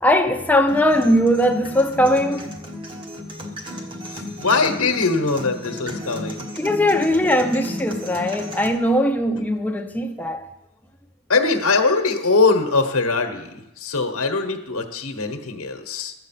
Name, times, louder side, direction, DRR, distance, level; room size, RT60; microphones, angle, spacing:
voice 1, 0.0-2.5 6.5-10.4, equal, 10° left, 0.6 m, -20 dB
sound 1, 0.7-8.7, left 1 dB, 20° right, 1.1 m, -34 dB
voice 2, 4.1-6.5 11.3-16.1, left 3 dB, 75° left, 1.1 m, -22 dB
12.0 x 7.7 x 5.7 m
head